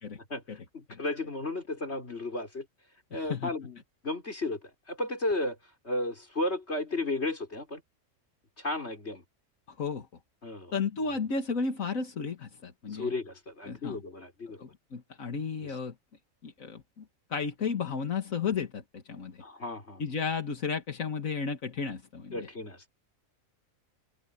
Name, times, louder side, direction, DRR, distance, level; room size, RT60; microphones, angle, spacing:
voice 1, 0.3-2.7 3.1-5.6 5.8-7.8 8.6-9.2 10.4-10.7 12.9-14.6 15.6-15.8 19.4-20.0 22.3-22.9, left 2 dB, 55° left, 5.2 m, -34 dB
voice 2, 3.1-3.5 9.8-10.1 10.7-13.1 13.7-14.0 14.6-15.9 16.4-17.0 17.3-19.4 20.0-22.5, left 5 dB, 80° left, 2.1 m, -33 dB
open air
omnidirectional pair, 1.4 m